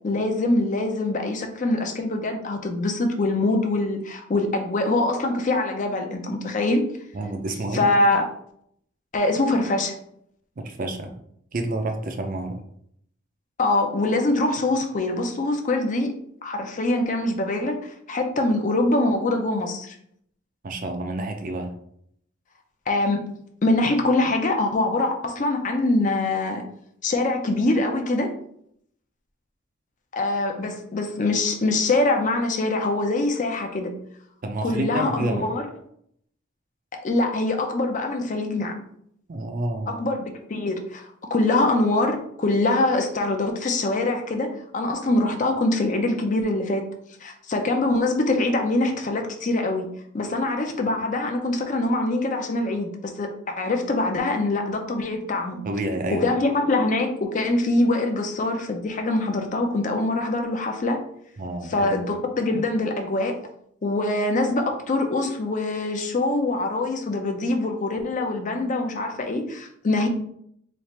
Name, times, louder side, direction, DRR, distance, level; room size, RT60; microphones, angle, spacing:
voice 1, 0.0-6.8 7.7-8.2 9.1-9.9 13.6-16.1 16.4-17.8 18.1-20.0 22.9-23.2 23.6-26.6 27.0-28.3 30.1-33.9 34.6-35.6 37.0-38.8 39.9-46.8 47.2-49.9 50.1-55.6 56.1-61.0 61.7-63.4 63.8-70.1, left 2 dB, 40° left, 4 dB, 0.5 m, -24 dB
voice 2, 7.1-7.8 10.6-11.1 11.5-12.6 20.6-21.7 34.4-35.4 39.3-40.0 55.6-56.3 61.4-62.0, right 2 dB, 45° right, 5 dB, 0.5 m, -29 dB
3.2 x 2.4 x 4.1 m, 0.69 s
head